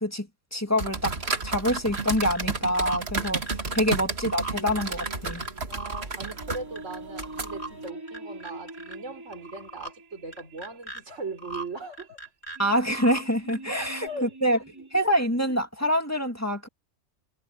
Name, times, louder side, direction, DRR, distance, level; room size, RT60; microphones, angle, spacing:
voice 1, 0.0-1.2 1.4-5.4 12.6-14.6 14.9-16.7, equal, 10° left, 2.4 m, -26 dB
sound 1, 0.7-7.9, right 3 dB, 55° right, 2.3 m, -32 dB
sound 2, 1.4-2.4 2.7-5.5 5.7-7.0 7.2-7.7 8.1-9.0 9.3-9.9 10.3-11.0 11.4-11.7 11.9-13.2 13.5-14.1, right 3 dB, 55° left, 8.0 m, -39 dB
sound 3, 4.6-15.0, right 2 dB, 15° right, 3.7 m, -45 dB
voice 2, 5.7-12.2 13.7-14.6 14.9-15.1, right 3 dB, 70° right, 4.8 m, -39 dB
omnidirectional pair, 1.3 m